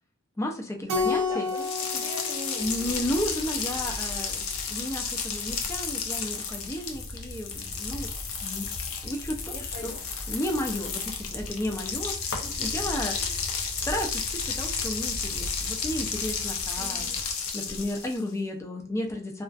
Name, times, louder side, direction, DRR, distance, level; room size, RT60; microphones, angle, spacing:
voice 1, 0.4-1.5 2.6-8.1 8.4-8.7 9.0-9.5 9.8-9.9 10.3-13.2 13.8-17.1 17.5-19.4, left 1 dB, 15° left, 2 dB, 0.4 m, -33 dB
Keyboard (musical), 0.9-3.5, left 4 dB, 85° right, 0.5 m, -31 dB
voice 2, 1.3-2.9 9.5-10.0 12.4-12.8 13.1-13.3 16.8-17.2, left 1 dB, 35° right, -3 dB, 0.9 m, -42 dB
sound 1, 1.5-18.3, left 6 dB, 70° left, 0.5 m, -33 dB
sound 2, 2.6-17.3, left 1 dB, 45° left, 0.8 m, -41 dB
2.4 x 2.4 x 2.2 m, 0.39 s
head